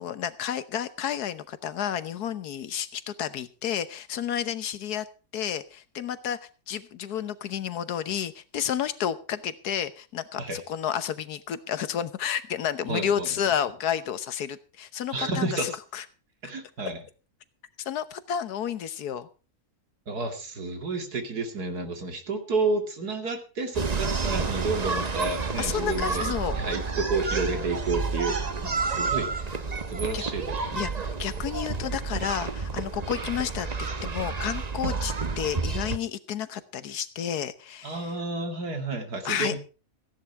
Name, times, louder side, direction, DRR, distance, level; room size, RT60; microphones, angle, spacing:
voice 1, 0.0-5.0 5.3-6.4 6.7-16.0 17.8-19.3 25.6-26.6 30.1-30.2 30.8-38.0 39.2-39.6, left 9 dB, 85° left, 13 dB, 1.5 m, -31 dB
voice 2, 12.9-13.3 15.1-15.8 16.4-17.0 20.1-29.6 29.9-30.9 34.8-34.9 37.8-39.6, right 3 dB, 85° right, 5 dB, 2.9 m, -31 dB
sound 1, 23.7-36.0, right 4 dB, 30° right, 0.9 m, -30 dB
15.5 x 10.5 x 4.6 m, 0.35 s
omnidirectional pair, 1.6 m